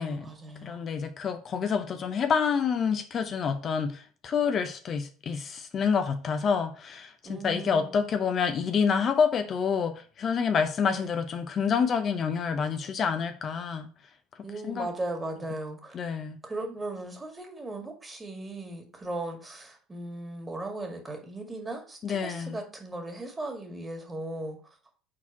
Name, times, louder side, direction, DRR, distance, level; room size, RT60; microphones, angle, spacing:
voice 1, 0.0-0.8 7.2-8.0 10.9-11.2 14.4-16.0 16.4-24.6, right 2 dB, 20° right, 2.0 m, -37 dB
voice 2, 0.6-13.9 14.6-14.9 15.9-16.4 22.0-22.6, left 6 dB, 45° left, 0.7 m, -28 dB
4.7 x 4.2 x 5.8 m
hypercardioid pair, 75°, 0 cm